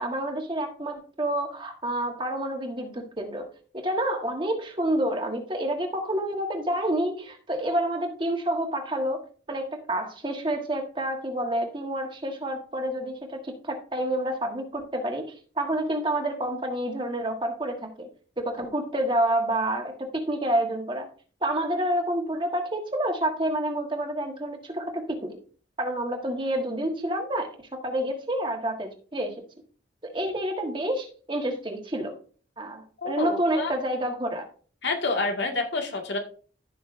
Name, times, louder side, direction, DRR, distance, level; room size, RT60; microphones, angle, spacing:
voice 1, 0.0-18.1 18.4-21.1 21.4-25.4 25.8-29.3 30.0-32.1 32.6-34.5, right 1 dB, 25° right, 3 dB, 1.4 m, -28 dB
voice 2, 33.0-33.7 34.8-36.2, left 3 dB, 80° left, 2 dB, 1.9 m, -28 dB
15.0 x 5.7 x 2.6 m, 0.41 s
head